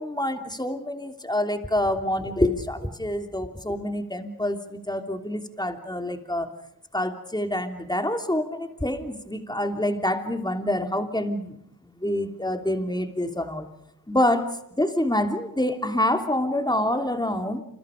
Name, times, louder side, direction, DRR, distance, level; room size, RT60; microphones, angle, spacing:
voice 1, 0.0-6.5 6.9-11.6 11.9-13.7 14.1-14.4 14.8-17.6, left 1 dB, 10° left, 5 dB, 3.0 m, -26 dB
28.5 x 27.5 x 5.2 m, 0.72 s
wide cardioid pair, 65°, 37 cm